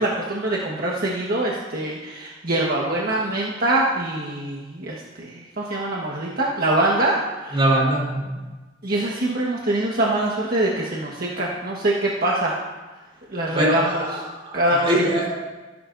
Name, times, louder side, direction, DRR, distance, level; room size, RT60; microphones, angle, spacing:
voice 1, 0.0-7.6 8.8-12.6 13.3-14.2 14.5-15.3, right 1 dB, 55° right, -4 dB, 1.5 m, -24 dB
voice 2, 7.5-8.3 13.5-15.3, right 1 dB, 30° right, -4 dB, 4.1 m, -22 dB
24.5 x 11.0 x 2.7 m, 1.2 s
head